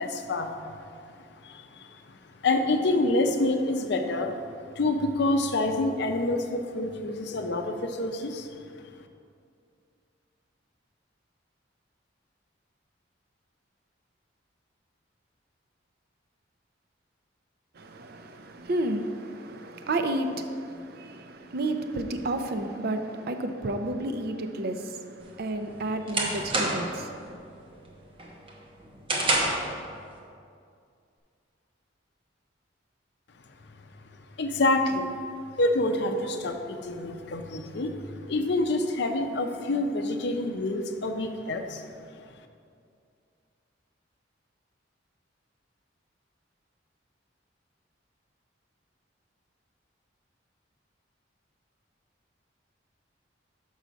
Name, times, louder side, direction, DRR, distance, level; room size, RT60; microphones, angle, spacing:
voice 1, 0.0-4.4 4.7-8.9 34.4-35.2 35.6-42.0, left 2 dB, 60° left, 0.6 m, -28 dB
voice 2, 17.8-27.6, right 1 dB, 55° right, 0.5 m, -32 dB
sound 1, 25.3-27.0 27.4-27.8 28.2-29.7, right 2 dB, 30° right, 0.9 m, -28 dB
6.1 x 5.5 x 5.1 m
head